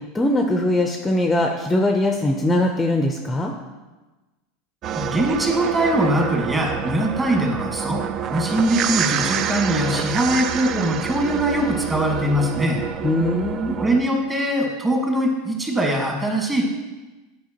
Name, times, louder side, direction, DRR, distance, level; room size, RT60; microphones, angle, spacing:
voice 1, 0.1-3.5 13.0-13.8, left 1 dB, 15° left, 3 dB, 0.5 m, -21 dB
sound 1, 4.8-14.0, right 8 dB, 40° right, 0.3 m, -27 dB
voice 2, 5.0-12.8 13.8-16.6, right 1 dB, 15° right, 0 dB, 1.4 m, -22 dB
9.2 x 4.7 x 2.9 m, 1.2 s
supercardioid pair, 115°, 0 cm